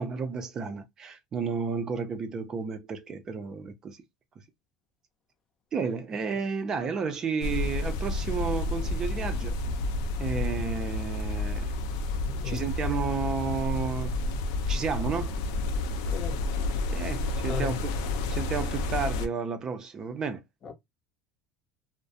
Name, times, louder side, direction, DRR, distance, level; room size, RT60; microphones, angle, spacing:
voice 1, 0.0-4.0 5.7-9.6 10.2-11.7 12.4-14.2 14.7-15.4 16.9-17.9 18.3-20.4, right 5 dB, 30° right, 0.4 m, -32 dB
sound 1, 7.4-19.3, left 2 dB, 75° left, 0.4 m, -30 dB
voice 2, 12.2-12.7 16.1-16.4 17.5-17.8 20.6-20.7, left 6 dB, 30° left, 0.6 m, -35 dB
2.3 x 2.0 x 2.5 m
supercardioid pair, 125°, 2 cm